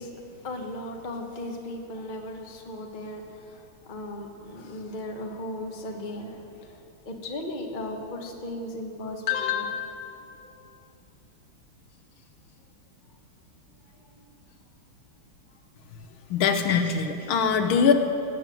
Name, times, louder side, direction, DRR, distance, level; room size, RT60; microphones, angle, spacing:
voice 1, 0.0-10.2 14.1-14.3 16.0-16.1 16.7-17.3, left 4 dB, 30° left, 3 dB, 1.1 m, -35 dB
voice 2, 16.3-17.9, left 6 dB, 75° left, 7 dB, 1.7 m, -22 dB
18.0 x 7.4 x 9.1 m, 2.7 s
omnidirectional pair, 2.4 m